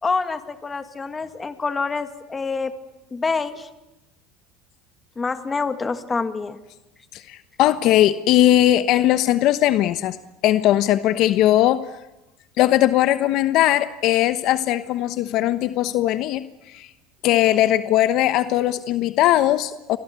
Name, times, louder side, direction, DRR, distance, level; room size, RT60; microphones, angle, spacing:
voice 1, 0.0-2.7 3.1-3.7 5.2-6.6, left 4 dB, 20° left, 9 dB, 2.2 m, -26 dB
voice 2, 7.1-10.2 10.4-11.8 12.6-16.4 16.7-16.9 17.2-20.0, left 13 dB, 55° left, 12 dB, 1.1 m, -19 dB
29.5 x 24.0 x 8.3 m, 0.98 s
supercardioid pair, 125°, 0 cm